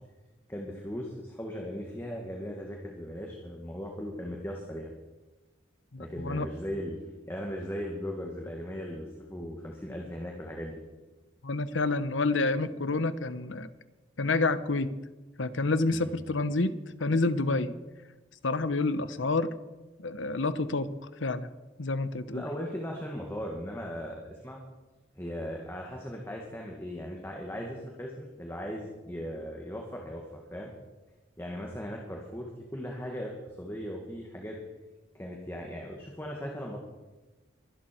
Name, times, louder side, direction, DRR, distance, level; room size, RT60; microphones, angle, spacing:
voice 1, 0.5-4.9 6.0-7.0 7.3-10.8 15.9-16.1 22.3-24.6 25.2-30.2 30.5-30.7 31.4-34.6 35.1-36.8, equal, 10° left, 0 dB, 1.9 m, -38 dB
voice 2, 5.9-6.5 11.4-13.7 14.2-15.0 15.4-17.7 18.4-19.5 20.0-21.5 21.8-22.4, left 3 dB, 80° left, 13 dB, 1.0 m, -28 dB
23.0 x 12.0 x 4.6 m, 1.2 s
head